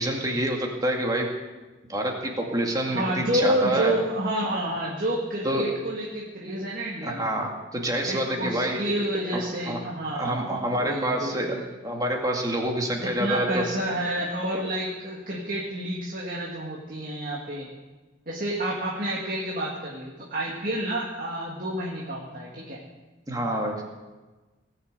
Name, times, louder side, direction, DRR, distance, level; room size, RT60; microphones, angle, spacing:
voice 1, 0.0-1.3 1.9-4.0 5.4-5.7 7.0-8.8 9.7-9.8 10.1-11.6 11.8-13.6 23.3-23.8, right 1 dB, 20° right, 1 dB, 2.2 m, -27 dB
voice 2, 2.9-7.3 8.1-11.7 13.0-17.7 18.3-22.8, right 1 dB, 50° right, -3 dB, 2.0 m, -29 dB
18.5 x 6.7 x 8.2 m, 1.2 s
head